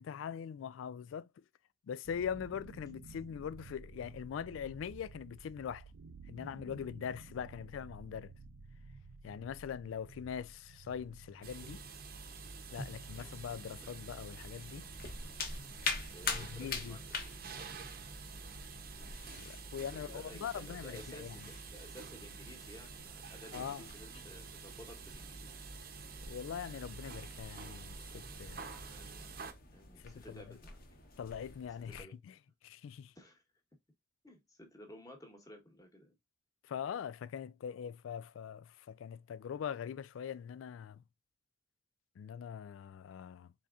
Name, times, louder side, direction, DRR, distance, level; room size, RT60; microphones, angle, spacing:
voice 1, 0.0-1.4 1.9-5.9 6.3-8.3 9.2-11.8 12.7-14.9 16.3-17.0 19.3-21.5 23.5-23.9 26.2-28.7 30.0-30.6 31.2-32.4 32.6-33.1 36.6-41.0 42.2-43.5, left 8 dB, 90° left, 0.3 m, -42 dB
sound 1, 2.0-16.0, right 3 dB, 85° right, 0.5 m, -54 dB
sound 2, 11.4-29.5, right 4 dB, 50° right, 0.7 m, -48 dB
sound 3, 13.1-32.0, left 4 dB, 50° left, 1.0 m, -46 dB
voice 2, 13.1-13.4 16.1-17.0 19.9-25.5 28.8-29.3 29.7-30.8 31.9-32.2 33.1-33.4 34.2-36.1, equal, 20° left, 1.2 m, -54 dB
4.1 x 3.5 x 2.4 m
head